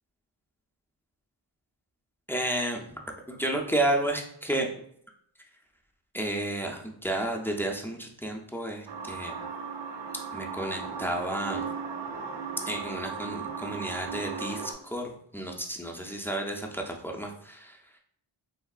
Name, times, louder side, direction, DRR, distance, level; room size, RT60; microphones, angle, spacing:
voice 1, 2.3-3.0 3.3-4.7 6.1-9.4 10.3-11.6 12.7-17.7, right 1 dB, 5° left, 0 dB, 0.3 m, -31 dB
sound 1, 8.9-14.7, right 5 dB, 65° right, 0.5 m, -36 dB
3.5 x 2.3 x 2.3 m, 0.68 s
wide cardioid pair, 70°, 47 cm